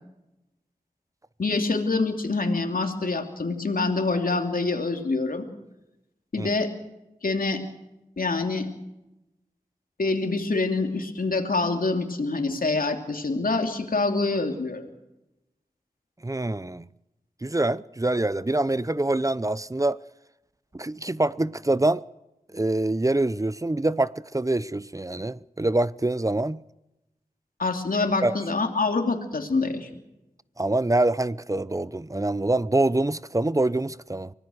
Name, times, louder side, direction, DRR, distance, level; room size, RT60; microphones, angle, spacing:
voice 1, 1.4-5.4 6.3-6.7 7.2-7.6 8.2-8.7 10.0-14.8 27.6-29.9, left 3 dB, 70° left, 3.1 m, -26 dB
voice 2, 16.2-16.9 17.4-20.0 20.7-22.0 22.5-26.6 28.2-28.4 30.6-34.3, right 2 dB, 20° right, 0.7 m, -25 dB
24.5 x 18.0 x 6.4 m
cardioid pair, 45°, 15 cm